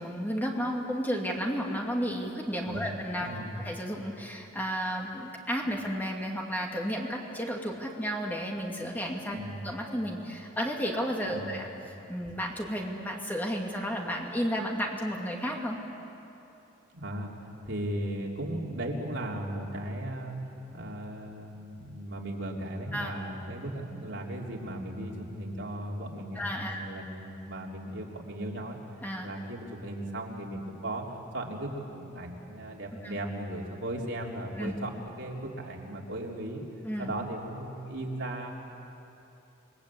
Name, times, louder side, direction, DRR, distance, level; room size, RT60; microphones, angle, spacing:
voice 1, 0.0-3.3 3.6-9.4 9.6-11.7 12.1-15.8 22.9-23.1 26.3-26.8 29.0-29.3 33.0-33.2 34.6-34.7 36.8-37.1, equal, 10° left, 0 dB, 2.4 m, -32 dB
voice 2, 3.2-3.6 9.3-9.6 11.3-11.5 16.9-17.3 17.6-20.4 20.7-28.8 29.2-31.0 31.3-36.6 37.0-38.5, right 1 dB, 65° right, -1 dB, 3.3 m, -37 dB
28.0 x 21.5 x 8.5 m, 2.9 s
head